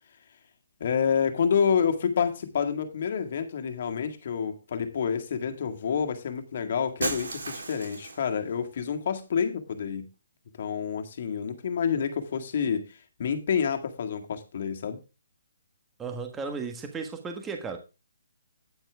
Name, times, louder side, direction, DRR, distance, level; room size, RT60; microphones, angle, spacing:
voice 1, 0.8-10.1 10.6-12.9 13.2-15.0, left 7 dB, 55° left, 1.9 m, -28 dB
Shatter, 7.0-8.3, right 3 dB, 85° right, 3.5 m, -34 dB
voice 2, 16.0-17.8, right 4 dB, 10° right, 1.5 m, -35 dB
9.7 x 8.9 x 3.5 m
hypercardioid pair, 155°, 0 cm